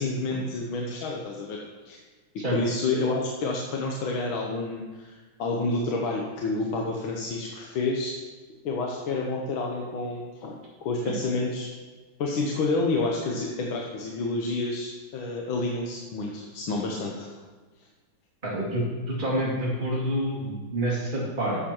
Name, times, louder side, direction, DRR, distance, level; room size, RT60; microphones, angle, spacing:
voice 1, 0.0-1.6 1.9-2.0 2.4-8.1 8.7-11.7 12.2-17.4, left 3 dB, 75° left, -1 dB, 1.8 m, -29 dB
voice 2, 18.4-21.6, right 1 dB, 20° right, -6 dB, 2.8 m, -28 dB
12.5 x 7.4 x 4.4 m, 1.4 s
omnidirectional pair, 2.3 m